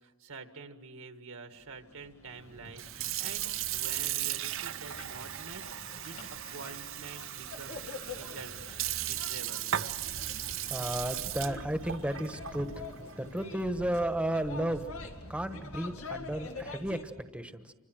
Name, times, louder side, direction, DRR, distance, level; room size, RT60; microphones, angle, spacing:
voice 1, 0.0-8.8 9.1-9.7 10.4-11.0 11.5-11.7, right 4 dB, 80° right, 7 dB, 1.8 m, -48 dB
Street Noise w preacher, 1.6-17.0, left 3 dB, 85° left, 2.2 m, -46 dB
Sink (filling or washing) / Fill (with liquid), 2.6-14.2, right 12 dB, 65° right, 0.7 m, -37 dB
sound 1, 4.5-8.3 8.7-10.0 10.8-11.3, left 4 dB, 60° left, 3.2 m, -56 dB
voice 2, 10.4-14.9 15.3-17.7, right 1 dB, 5° right, 8 dB, 1.2 m, -34 dB
28.5 x 25.5 x 6.3 m, 1.2 s
head